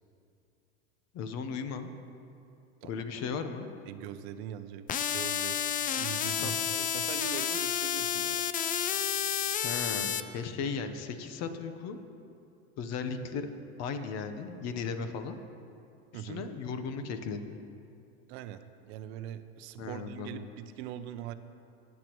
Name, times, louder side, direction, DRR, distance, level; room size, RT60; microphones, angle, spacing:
voice 1, 1.1-1.9 2.8-3.7 6.4-6.5 9.6-12.0 12.8-13.5 13.8-15.4 16.1-17.6 19.8-20.5, left 5 dB, 50° left, 9 dB, 1.0 m, -36 dB
voice 2, 3.9-5.6 5.9-8.4 15.0-15.1 16.1-16.5 18.3-21.3, right 10 dB, 65° right, 11 dB, 0.7 m, -42 dB
sound 1, 4.9-10.2, left 9 dB, 25° left, 0.4 m, -30 dB
20.0 x 8.5 x 3.1 m, 2.6 s
supercardioid pair, 105°, 34 cm